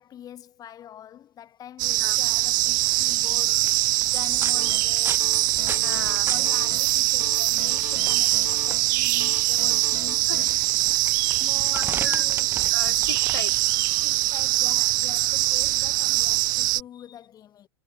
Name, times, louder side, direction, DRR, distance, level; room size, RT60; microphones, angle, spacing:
voice 1, 0.0-3.7 4.1-5.2 6.1-10.5 11.4-12.5 14.0-17.7, left 10 dB, 30° left, 2.5 m, -44 dB
sound 1, 1.8-16.8, right 20 dB, 60° right, 0.4 m, -23 dB
sound 2, 2.4-16.8, right 5 dB, 20° right, 3.8 m, -40 dB
sound 3, 4.5-4.9 5.2-6.9 7.2-8.9 9.2-10.4, left 29 dB, 60° left, 6.6 m, -41 dB
voice 2, 5.8-6.3 10.3-10.4 11.7-12.2 12.7-13.8, left 7 dB, 90° left, 1.6 m, -37 dB
hypercardioid pair, 100°, 11 cm